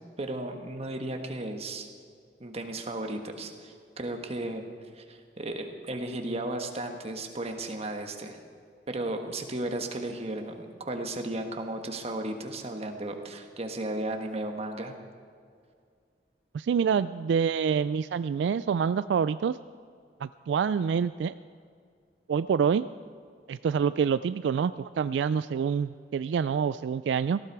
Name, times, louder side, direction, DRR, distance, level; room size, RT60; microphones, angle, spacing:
voice 1, 0.2-1.9 2.4-4.7 4.9-8.4 8.9-14.9, right 1 dB, 35° right, 5 dB, 1.4 m, -35 dB
voice 2, 16.5-19.6 20.2-21.4 22.3-22.9 23.5-27.4, right 6 dB, 75° right, 14 dB, 0.3 m, -26 dB
18.0 x 15.0 x 4.7 m, 2.2 s
head